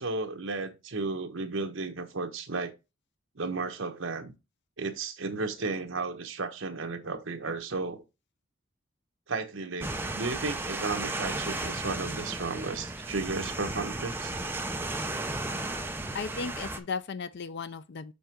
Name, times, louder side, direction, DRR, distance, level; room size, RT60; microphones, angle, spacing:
voice 1, 0.0-2.8 3.4-4.3 4.8-8.0 9.3-14.3, right 3 dB, 70° right, 1.1 m, -34 dB
sound 1, 9.8-16.8, right 2 dB, 10° right, 0.7 m, -34 dB
voice 2, 16.1-18.1, left 5 dB, 60° left, 0.5 m, -35 dB
7.0 x 3.8 x 4.4 m
head